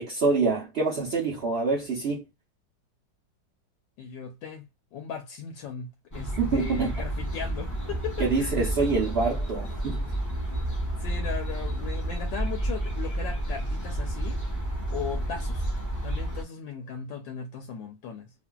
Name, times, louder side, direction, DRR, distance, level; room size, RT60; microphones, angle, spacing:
voice 1, 0.0-2.2 6.4-6.9 8.2-10.1, right 4 dB, 75° right, 0.5 m, -26 dB
voice 2, 4.0-4.6 4.9-8.7 11.0-15.7 16.0-18.3, left 7 dB, 80° left, 1.3 m, -38 dB
sound 1, 6.1-16.4, right 1 dB, 20° left, 0.4 m, -30 dB
2.9 x 2.5 x 2.2 m
omnidirectional pair, 2.0 m